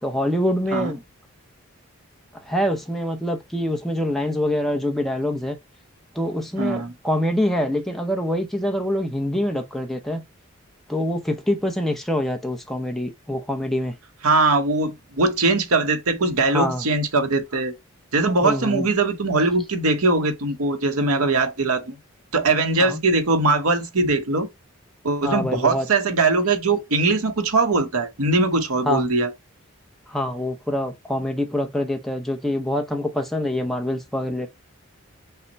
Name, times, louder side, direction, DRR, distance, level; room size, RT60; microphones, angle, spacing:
voice 1, 0.0-1.0 2.3-5.6 6.1-10.2 10.9-14.0 16.5-16.9 18.4-18.9 22.8-23.0 25.2-25.9 28.8-29.1 30.1-34.5, left 1 dB, ahead, 0.7 m, -25 dB
voice 2, 6.6-6.9 14.2-17.7 18.1-22.0 22.3-24.5 25.0-29.3, right 3 dB, 85° right, 1.0 m, -21 dB
5.7 x 2.2 x 4.0 m
head